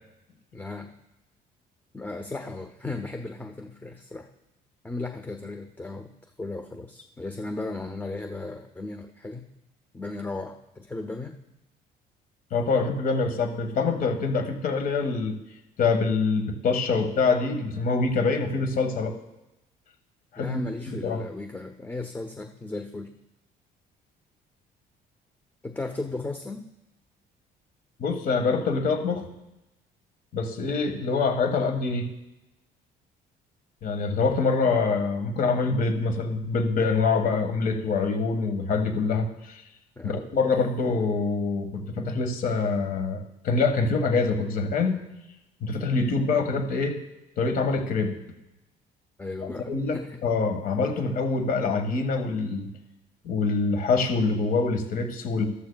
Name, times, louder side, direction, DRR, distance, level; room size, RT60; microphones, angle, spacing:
voice 1, 0.5-0.9 1.9-4.3 4.8-6.1 6.4-9.4 9.9-11.4 20.4-23.1 25.6-26.7 40.0-40.2 49.2-50.2, left 2 dB, 10° left, 6 dB, 0.6 m, -36 dB
voice 2, 12.5-15.3 15.8-19.1 20.3-21.2 28.0-29.3 30.3-32.1 33.8-39.6 40.0-45.1 45.6-47.0 47.4-48.2 49.7-50.0 50.2-52.7 53.2-55.5, left 4 dB, 55° left, 6 dB, 1.6 m, -25 dB
13.5 x 13.0 x 2.3 m, 0.95 s
cardioid pair, 110°, 17 cm